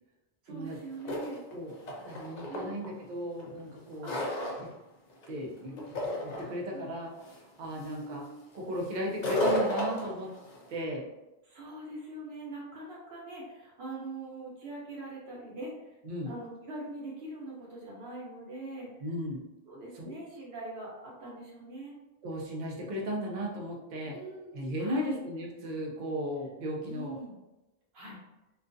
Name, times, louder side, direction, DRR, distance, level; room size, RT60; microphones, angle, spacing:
voice 1, 0.4-1.4 2.5-2.7 4.0-4.2 5.7-5.9 6.7-6.9 7.7-8.4 11.4-16.0 16.2-18.9 19.7-21.9 24.1-25.2 26.8-27.3 27.9-28.2, right 2 dB, 80° right, -3 dB, 1.0 m, -42 dB
sound 1, 0.7-0.8 1.0-2.9 3.4-4.7 5.1-5.5 5.8-6.5 7.2-7.3 7.7-8.0 9.1-10.7, left 1 dB, 55° left, 0.6 m, -32 dB
voice 2, 2.1-4.2 4.6-4.7 5.3-5.8 6.2-7.1 7.6-8.2 8.5-10.3 10.7-11.0 16.0-16.3 19.0-19.4 20.0-20.1 22.2-24.2 24.5-27.2, equal, 55° right, -1 dB, 0.7 m, -35 dB
2.4 x 2.3 x 2.5 m, 0.98 s
omnidirectional pair, 1.0 m